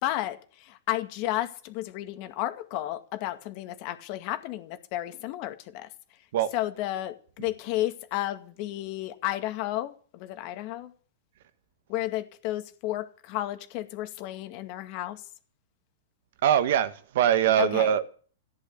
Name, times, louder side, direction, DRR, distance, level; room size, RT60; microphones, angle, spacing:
voice 1, 0.0-5.9 6.5-10.9 11.9-15.2 17.6-17.9, left 14 dB, 45° left, 2.0 m, -32 dB
voice 2, 16.4-18.1, right 10 dB, 65° right, 1.5 m, -23 dB
14.5 x 11.0 x 8.4 m
hypercardioid pair, 145°, 0 cm